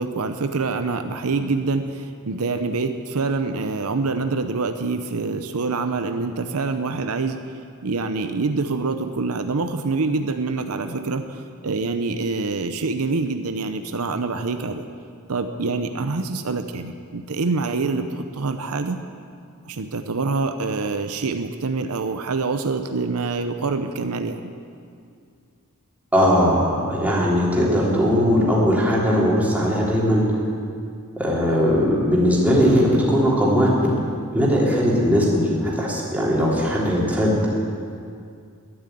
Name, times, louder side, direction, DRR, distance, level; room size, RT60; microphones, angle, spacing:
voice 1, 0.0-7.4 7.8-14.9 15.3-19.0 19.7-24.5, right 3 dB, 75° right, 8 dB, 0.7 m, -26 dB
voice 2, 26.1-30.4 31.2-33.9 34.3-37.5, equal, 5° right, -5 dB, 3.1 m, -19 dB
12.0 x 10.5 x 9.2 m, 2.3 s
head